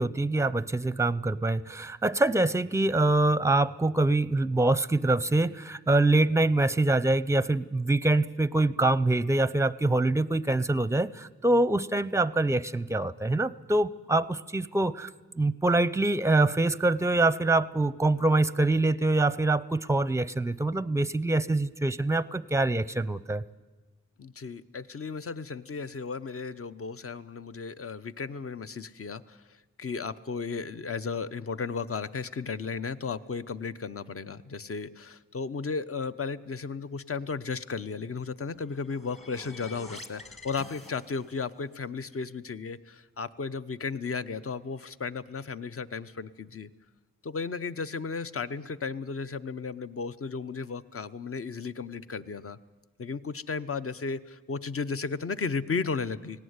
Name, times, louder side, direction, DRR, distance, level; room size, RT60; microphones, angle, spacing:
voice 1, 0.0-15.1 15.4-23.4, right 2 dB, 10° right, 18 dB, 0.6 m, -25 dB
voice 2, 24.2-29.5 29.8-46.7 47.2-52.6 53.0-56.4, left 5 dB, 50° left, 13 dB, 0.8 m, -34 dB
sound 1, 38.5-41.5, left 2 dB, 20° left, 1.8 m, -47 dB
18.0 x 17.5 x 9.5 m, 1.2 s
wide cardioid pair, 90°, 30 cm